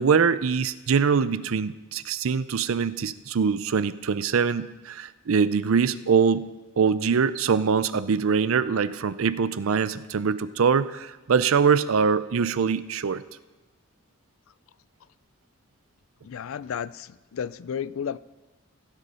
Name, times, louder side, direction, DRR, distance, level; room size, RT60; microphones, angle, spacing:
voice 1, 0.0-6.5 6.8-13.2, right 6 dB, 70° right, 16 dB, 0.5 m, -23 dB
voice 2, 16.2-18.2, left 7 dB, 70° left, 19 dB, 0.4 m, -33 dB
16.0 x 8.2 x 5.5 m, 1.2 s
head